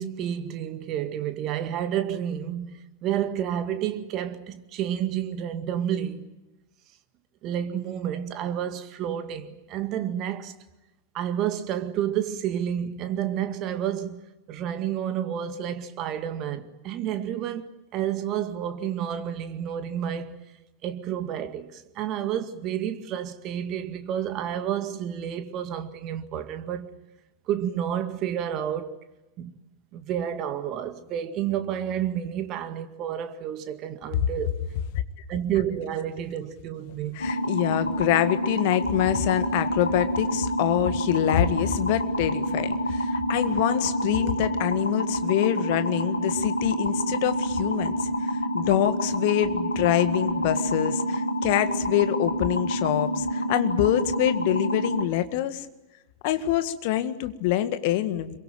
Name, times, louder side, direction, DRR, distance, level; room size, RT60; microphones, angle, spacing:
voice 1, 0.0-6.2 7.4-10.5 11.1-20.3 20.8-26.9 27.5-29.0 29.4-29.5 29.9-34.5 35.3-37.2, right 10 dB, 35° right, 2.0 m, -30 dB
voice 2, 37.1-55.7 56.2-58.4, left 12 dB, 50° left, 1.8 m, -25 dB
sound 1, 37.2-55.0, equal, 80° left, 1.8 m, -28 dB
27.0 x 23.0 x 9.2 m
figure-of-eight pair, 90°, 0 cm